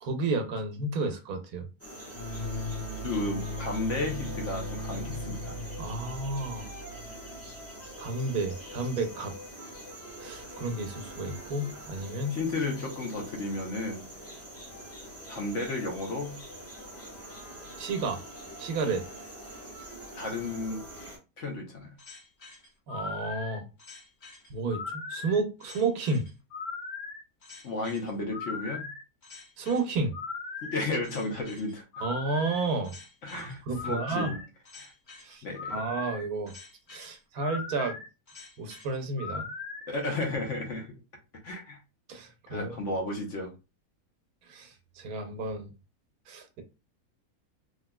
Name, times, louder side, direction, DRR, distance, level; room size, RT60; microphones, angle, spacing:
voice 1, 0.0-1.7 5.8-6.7 8.0-9.3 10.2-12.4 17.8-18.2 18.6-19.0 22.9-23.7 24.5-26.3 29.6-30.1 32.0-32.9 33.3-34.4 35.2-35.4 35.7-36.5 36.9-38.0 38.6-39.5 42.1-42.9 44.5-44.7 45.0-45.7 46.3-46.6, right 3 dB, 85° right, 1.2 m, -31 dB
sound 1, 1.8-21.2, equal, 10° left, 0.9 m, -44 dB
sound 2, 2.1-7.6, equal, 80° left, 1.6 m, -37 dB
voice 2, 3.0-5.6 12.3-14.0 15.3-16.4 20.2-20.8 21.4-21.9 27.6-28.9 30.6-32.1 33.2-34.4 34.8-34.9 35.4-35.8 39.9-40.9 41.4-41.8 42.5-43.5, left 2 dB, 60° left, 1.1 m, -33 dB
sound 3, 22.0-39.9, left 4 dB, 35° left, 1.1 m, -40 dB
3.4 x 2.5 x 2.2 m
omnidirectional pair, 1.6 m